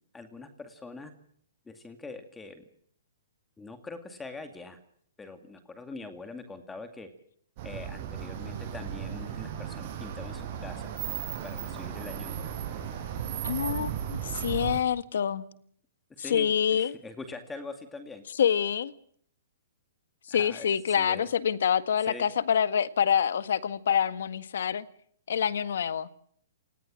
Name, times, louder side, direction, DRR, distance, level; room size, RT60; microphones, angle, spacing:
voice 1, 0.1-1.1 1.7-2.6 3.6-4.8 5.2-7.1 7.6-10.9 11.4-12.6 13.7-13.9 16.2-18.2 20.3-21.3 22.1-22.2, left 3 dB, 10° left, 2.2 m, -43 dB
sound 1, 7.6-14.8, right 9 dB, 40° right, 6.3 m, -35 dB
voice 2, 13.4-15.4 16.2-17.0 18.4-18.9 20.3-24.9 25.3-26.1, left 8 dB, 75° left, 1.7 m, -26 dB
28.5 x 19.0 x 7.6 m
hypercardioid pair, 155°, 0 cm